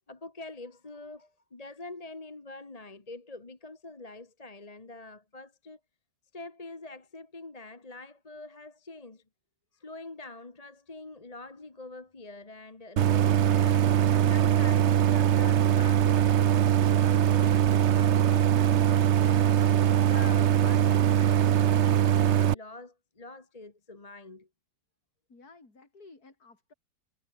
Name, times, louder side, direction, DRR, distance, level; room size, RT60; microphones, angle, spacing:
voice 1, 0.1-5.8 6.3-9.2 9.7-13.8 14.3-19.6 20.0-24.5, left 2 dB, 20° left, 1.5 m, -45 dB
Idling, 13.0-22.5, right 10 dB, 55° right, 0.8 m, -22 dB
voice 2, 25.3-26.7, left 3 dB, 55° left, 5.0 m, -54 dB
omnidirectional pair, 1.9 m